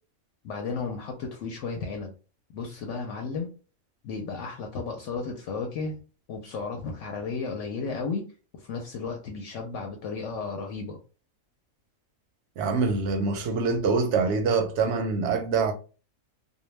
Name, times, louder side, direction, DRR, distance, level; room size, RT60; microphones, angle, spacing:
voice 1, 0.4-2.1 2.5-3.5 4.0-6.0 6.3-8.2 8.6-11.0, left 4 dB, 70° left, 0.8 m, -33 dB
voice 2, 12.6-15.7, right 4 dB, 65° right, 0.7 m, -25 dB
2.2 x 2.2 x 3.1 m
omnidirectional pair, 1.4 m